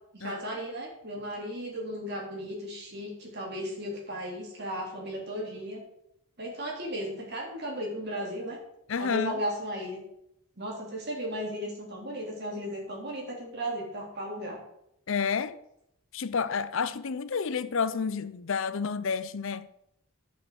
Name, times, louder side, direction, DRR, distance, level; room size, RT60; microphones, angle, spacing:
voice 1, 0.1-5.8 6.4-8.6 9.0-10.0 10.6-14.6, equal, 50° right, 3.5 m, -35 dB
voice 2, 8.9-9.4 15.1-15.6 16.1-19.7, left 6 dB, 65° left, 0.5 m, -30 dB
11.0 x 6.5 x 6.4 m
head